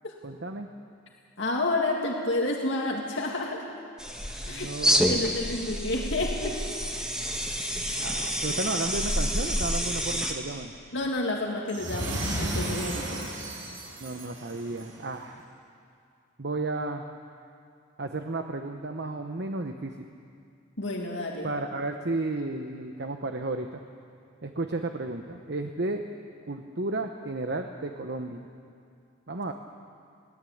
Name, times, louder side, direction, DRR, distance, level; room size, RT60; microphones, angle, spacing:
voice 1, 0.2-0.7 4.5-5.3 7.9-10.7 14.0-15.5 16.4-17.0 18.0-20.1 21.4-23.8 24.4-26.0 26.5-28.4 29.3-29.5, right 2 dB, 50° right, 5 dB, 0.9 m, -33 dB
voice 2, 1.4-3.7 4.5-4.7 5.1-6.6 10.9-13.3 20.8-21.5, left 2 dB, 60° left, -1 dB, 2.1 m, -30 dB
sound 1, 4.0-10.3, equal, 5° right, 1.6 m, -28 dB
sound 2, 11.7-15.0, right 1 dB, 70° right, 6.6 m, -33 dB
22.5 x 17.5 x 8.6 m, 2.4 s
head